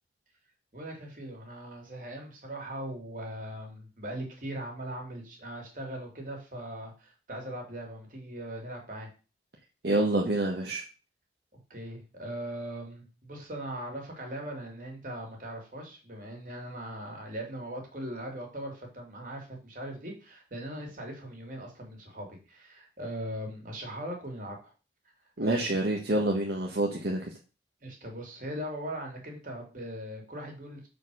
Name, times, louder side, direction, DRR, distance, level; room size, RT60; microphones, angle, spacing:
voice 1, 0.7-9.1 11.7-24.7 25.4-25.7 27.8-30.9, right 1 dB, 45° right, 1 dB, 2.8 m, -40 dB
voice 2, 9.8-10.8 25.4-27.3, right 1 dB, 65° right, 0 dB, 1.4 m, -27 dB
6.5 x 5.1 x 6.2 m, 0.33 s
head